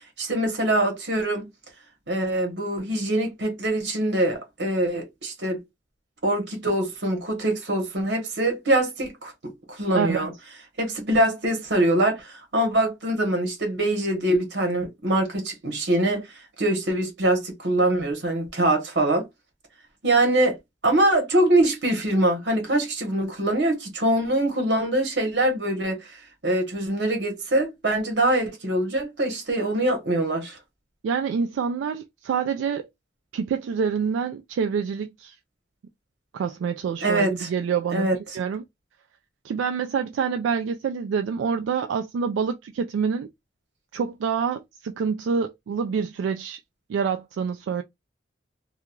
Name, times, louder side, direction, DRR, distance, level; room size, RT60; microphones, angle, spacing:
voice 1, 0.2-1.5 2.1-5.6 6.2-10.3 10.8-16.3 16.6-19.3 20.0-20.6 20.8-26.1 26.4-30.6 37.0-37.5 37.9-38.2, right 1 dB, 65° right, 1.1 m, -23 dB
voice 2, 9.9-10.3 31.0-32.9 33.3-35.3 36.3-38.6 39.4-43.3 43.9-46.6 46.9-47.8, right 6 dB, 90° right, 0.3 m, -27 dB
2.9 x 2.3 x 2.3 m
head